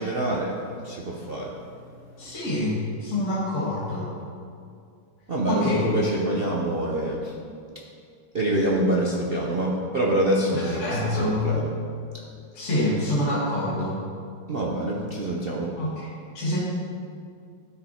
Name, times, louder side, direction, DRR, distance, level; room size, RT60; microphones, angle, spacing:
voice 1, 0.0-1.6 2.2-2.3 5.3-7.3 8.3-11.7 14.5-15.8, right 1 dB, 65° right, -3 dB, 0.5 m, -26 dB
voice 2, 2.2-4.1 5.5-5.9 10.5-11.5 12.5-14.0 15.8-16.1 16.3-16.6, left 1 dB, 35° left, -7 dB, 1.9 m, -26 dB
12.0 x 6.6 x 4.3 m, 2.3 s
omnidirectional pair, 2.3 m